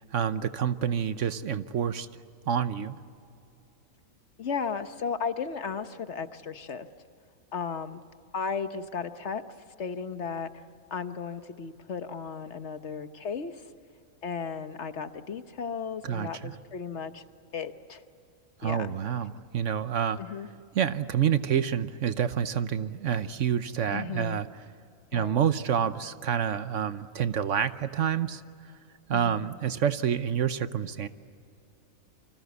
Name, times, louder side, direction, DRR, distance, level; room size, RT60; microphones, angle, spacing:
voice 1, 0.1-2.1 2.5-3.0 16.0-16.5 18.6-20.2 20.7-24.5 25.1-28.4 29.1-31.1, right 8 dB, 65° right, 12 dB, 1.1 m, -28 dB
voice 2, 4.4-6.9 7.5-8.0 8.3-9.4 9.8-10.6 10.9-13.6 14.2-17.3 17.5-18.0 18.6-18.9 20.2-20.5 23.9-24.4 25.1-25.3 29.1-29.5, left 6 dB, 55° left, 10 dB, 1.2 m, -35 dB
29.0 x 25.0 x 8.2 m, 2.5 s
omnidirectional pair, 1.5 m